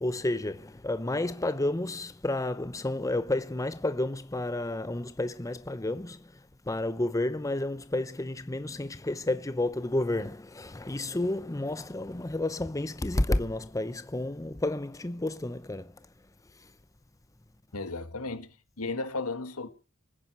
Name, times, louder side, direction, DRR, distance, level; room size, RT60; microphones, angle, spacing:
voice 1, 0.0-16.1 16.6-16.7, left 1 dB, 15° left, 0.7 m, -31 dB
voice 2, 17.7-18.5 18.8-19.7, left 3 dB, 85° left, 1.8 m, -34 dB
21.0 x 9.9 x 6.1 m
head